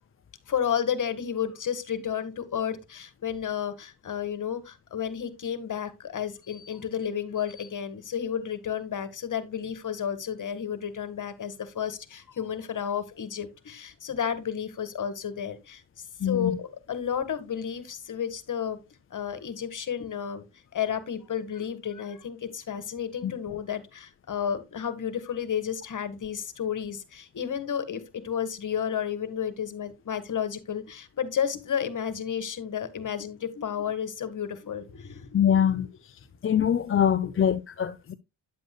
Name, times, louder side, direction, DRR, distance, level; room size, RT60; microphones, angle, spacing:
voice 1, 0.5-18.8 19.1-20.4 20.7-35.9 37.2-37.3, left 8 dB, 50° left, 1.6 m, -32 dB
voice 2, 16.2-16.5 23.2-23.3 35.3-35.9 36.4-38.1, left 9 dB, 30° left, 0.5 m, -23 dB
9.4 x 8.0 x 2.2 m
cardioid pair, 85°, 41 cm